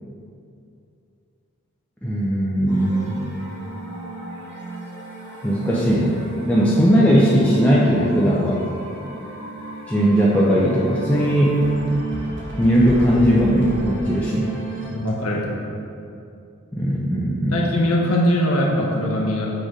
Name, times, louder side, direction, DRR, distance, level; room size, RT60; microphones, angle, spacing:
voice 1, 2.0-3.3 5.4-6.2 6.5-8.6 9.9-11.6 12.6-14.6 16.7-17.7, equal, 5° left, -6 dB, 0.4 m, -18 dB
sound 1, 2.7-14.9, right 3 dB, 55° right, 1.4 m, -33 dB
voice 2, 14.9-15.6 17.5-19.5, equal, 75° left, -2 dB, 0.8 m, -21 dB
6.3 x 3.3 x 4.9 m, 2.6 s
head